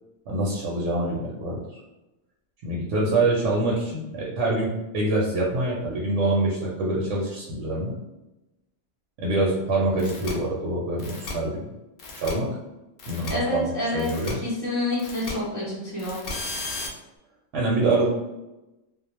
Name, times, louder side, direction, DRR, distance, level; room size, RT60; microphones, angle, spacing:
voice 1, 0.3-1.8 2.6-4.7 4.9-7.9 9.2-11.6 12.2-12.5 13.1-14.4 17.5-18.1, right 2 dB, 70° right, -4 dB, 0.9 m, -25 dB
sound 1, 10.0-10.3 11.0-11.3 12.0-12.3 13.0-13.3 14.0-14.3 15.0-15.3 16.0-16.9, left 3 dB, 60° left, 0.6 m, -34 dB
voice 2, 13.3-14.1 14.4-16.2, left 1 dB, 30° right, -8 dB, 0.3 m, -28 dB
2.2 x 2.0 x 3.0 m, 0.99 s
omnidirectional pair, 1.3 m